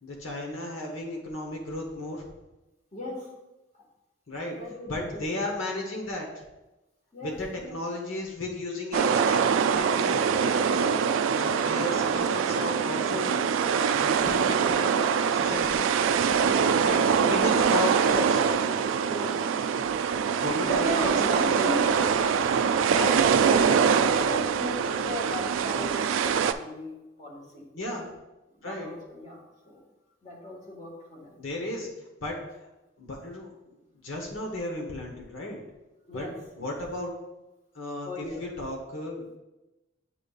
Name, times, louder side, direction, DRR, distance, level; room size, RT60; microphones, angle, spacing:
voice 1, 0.0-2.2 4.3-4.6 4.9-6.3 7.2-11.0 11.3-14.9 15.3-15.8 16.8-18.5 20.4-22.3 22.9-23.2 27.7-28.1 28.6-28.9 31.4-31.9 32.2-32.4 33.0-33.5 34.0-35.6 36.1-36.3 36.6-37.1 37.7-39.3, left 2 dB, 85° left, 1 dB, 1.1 m, -34 dB
voice 2, 2.9-3.3 4.3-5.5 7.1-7.8 16.4-17.1 19.1-19.4 20.6-22.1 23.8-26.0 26.2-27.6 28.5-29.8 30.2-31.4 36.1-36.7 38.0-38.4, left 1 dB, 35° left, -3 dB, 1.7 m, -37 dB
sound 1, 8.9-26.5, right 6 dB, 80° right, 0.3 m, -24 dB
8.8 x 5.1 x 2.4 m, 1.0 s
head